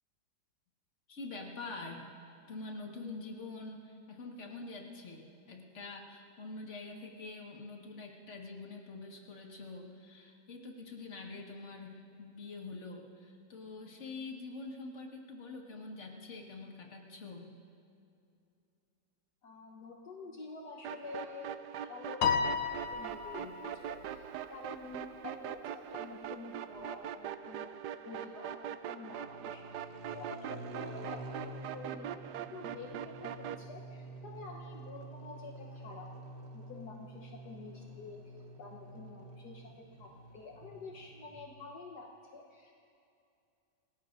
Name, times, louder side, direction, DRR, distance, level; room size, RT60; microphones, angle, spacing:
voice 1, 1.1-2.1 2.5-17.6, left 3 dB, 40° left, 0 dB, 1.9 m, -45 dB
voice 2, 19.4-27.7 28.0-32.1 32.5-36.1 36.5-42.7, left 4 dB, 60° left, 0 dB, 1.6 m, -48 dB
sound 1, 20.8-33.6, right 10 dB, 70° right, 1.0 m, -42 dB
Piano, 22.2-23.8, left 6 dB, 80° left, 1.4 m, -32 dB
sound 2, 29.1-41.4, right 1 dB, 40° right, 1.2 m, -49 dB
27.5 x 20.0 x 2.6 m, 2.5 s
omnidirectional pair, 2.0 m